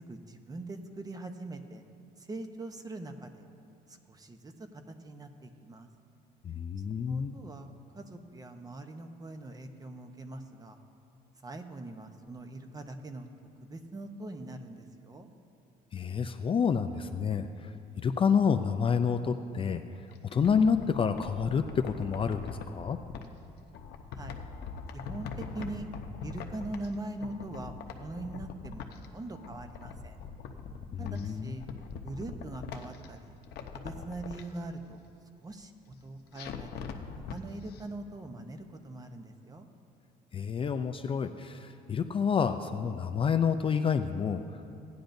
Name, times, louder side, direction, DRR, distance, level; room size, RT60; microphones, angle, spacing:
voice 1, 0.0-1.8 2.2-3.4 3.9-5.9 7.1-10.8 11.4-13.3 13.6-15.3 24.1-24.4 24.9-25.9 26.2-30.2 31.0-31.7 32.0-33.3 33.7-35.0 35.4-36.9 37.3-39.7, right 2 dB, 20° right, 7 dB, 0.8 m, -42 dB
voice 2, 6.4-7.4 15.9-17.7 18.0-19.8 20.3-23.0 30.9-31.5 40.3-44.4, left 6 dB, 30° left, 8 dB, 0.4 m, -28 dB
sound 1, 20.1-23.3 23.7-26.9 27.2-29.1 29.4-31.2 31.6-33.1 33.4-34.4 36.3-37.4 37.7-37.8, left 6 dB, 70° left, 0.8 m, -42 dB
17.5 x 10.0 x 2.6 m, 2.7 s
cardioid pair, 110°, 17 cm